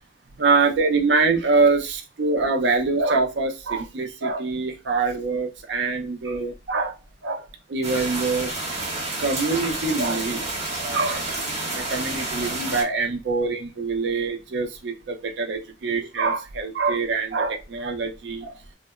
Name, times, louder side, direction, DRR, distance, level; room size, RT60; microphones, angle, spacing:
voice 1, 0.4-6.9 7.2-7.4 7.7-8.5 9.2-10.4 10.8-18.5, right 3 dB, 75° right, 4 dB, 0.5 m, -24 dB
sound 1, 7.8-12.8, right 2 dB, 40° right, 0.8 m, -29 dB
2.7 x 2.0 x 2.3 m, 0.26 s
head